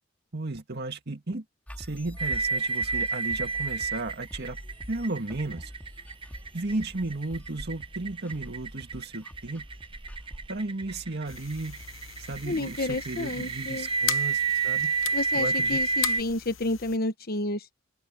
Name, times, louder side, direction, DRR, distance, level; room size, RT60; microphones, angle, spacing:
voice 1, 0.3-1.4 1.8-4.6 4.9-5.7 6.5-9.7 10.5-11.8 12.2-14.9 15.3-15.8, right 2 dB, 55° right, 1.9 m, -34 dB
sound 1, 1.7-12.6, equal, 10° left, 3.1 m, -45 dB
sound 2, 2.2-16.2, right 4 dB, 25° right, 0.8 m, -30 dB
sound 3, 11.3-17.0, left 11 dB, 70° left, 0.9 m, -38 dB
voice 2, 12.4-13.9 15.1-17.6, left 2 dB, 50° left, 1.3 m, -30 dB
open air
head